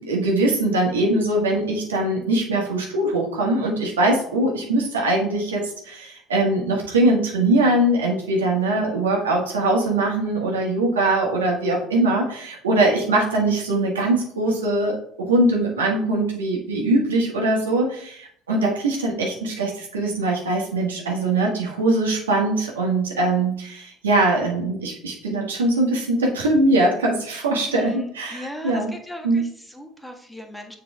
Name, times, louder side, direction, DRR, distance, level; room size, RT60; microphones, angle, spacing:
voice 1, 0.0-28.9 29.2-29.4, right 2 dB, 90° right, -1 dB, 1.5 m, -22 dB
voice 2, 27.7-30.8, left 1 dB, 5° left, 3 dB, 1.4 m, -38 dB
7.2 x 4.4 x 3.5 m, 0.64 s
hypercardioid pair, 65°, 0 cm